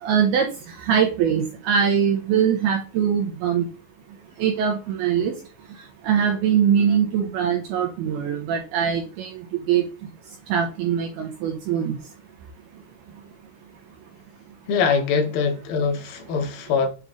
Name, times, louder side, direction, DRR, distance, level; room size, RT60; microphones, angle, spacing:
voice 1, 0.0-3.7 4.4-5.3 6.0-9.3 9.7-9.8 10.5-12.0, right 8 dB, 80° right, 2.4 m, -22 dB
voice 2, 14.7-16.9, left 5 dB, 70° left, 2.5 m, -23 dB
8.0 x 3.1 x 3.7 m
omnidirectional pair, 5.5 m